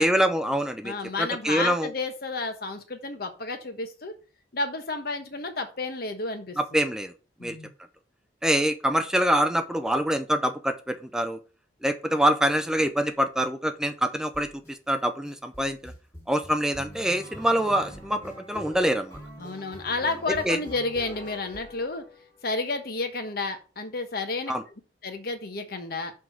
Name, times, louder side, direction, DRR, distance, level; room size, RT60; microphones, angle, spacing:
voice 1, 0.0-0.9 1.2-1.9 6.6-7.1 7.4-7.6 8.4-11.4 11.8-15.9 16.3-19.2 20.4-20.6 24.5-24.6, equal, 5° right, 7 dB, 0.5 m, -25 dB
voice 2, 0.8-4.1 4.5-6.8 7.4-7.7 19.4-22.0 22.4-24.5 25.0-26.1, left 3 dB, 60° left, 6 dB, 1.2 m, -31 dB
sound 1, 14.3-14.7 15.2-22.4, equal, 15° left, 1.9 m, -44 dB
6.0 x 4.7 x 5.0 m, 0.34 s
head